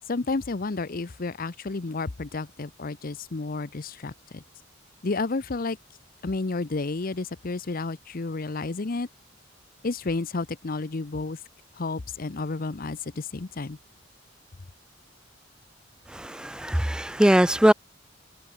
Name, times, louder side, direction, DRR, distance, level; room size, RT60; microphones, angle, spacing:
voice 1, 0.1-4.4 5.0-5.8 6.2-9.1 9.8-11.4 11.8-13.8, left 3 dB, 50° left, 0.7 m, -31 dB
voice 2, 16.1-17.7, right 1 dB, 5° right, 0.4 m, -21 dB
head